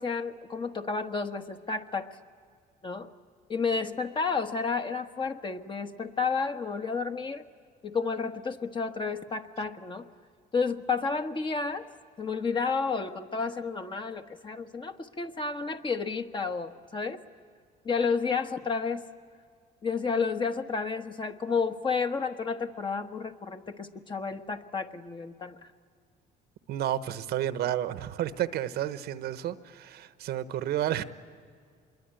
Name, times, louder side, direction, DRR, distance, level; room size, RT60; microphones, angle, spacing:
voice 1, 0.0-2.1 2.8-3.1 3.5-7.4 7.8-10.0 10.5-11.9 12.2-17.2 17.8-19.0 19.8-25.6, left 5 dB, 30° left, 6 dB, 1.3 m, -31 dB
voice 2, 26.7-31.0, right 12 dB, 70° right, 12 dB, 1.0 m, -31 dB
26.0 x 22.5 x 9.0 m, 2.1 s
cardioid pair, 110°, 17 cm